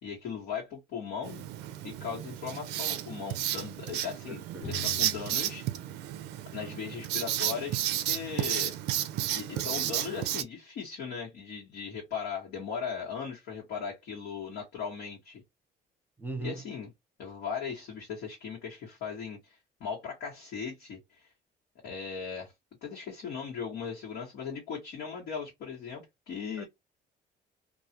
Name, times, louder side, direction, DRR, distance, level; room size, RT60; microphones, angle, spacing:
voice 1, 0.0-1.4 1.8-5.6 6.5-7.8 8.1-8.7 9.2-15.4 16.4-16.9 17.2-21.3 21.8-22.5 22.8-26.6, left 6 dB, 80° left, 1.2 m, -38 dB
Writing, 1.2-10.4, right 12 dB, 85° right, 0.4 m, -33 dB
voice 2, 4.3-4.8 9.5-9.9 16.2-16.6 26.6-26.7, right 2 dB, 10° right, 0.7 m, -40 dB
Drum, 4.6-8.1, left 3 dB, 60° left, 0.9 m, -46 dB
2.3 x 2.3 x 2.8 m
cardioid pair, 110°, 17 cm